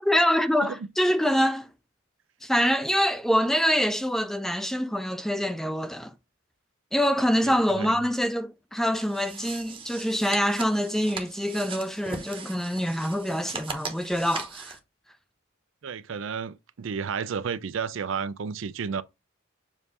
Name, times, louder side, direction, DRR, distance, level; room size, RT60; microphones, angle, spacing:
voice 1, 0.0-1.7 2.4-6.1 6.9-14.8, equal, ahead, 0.4 m, -25 dB
voice 2, 7.4-7.9 15.8-19.0, right 6 dB, 65° right, 0.4 m, -32 dB
sound 1, 8.9-14.8, right 5 dB, 25° right, 0.9 m, -39 dB
7.2 x 2.7 x 4.7 m
head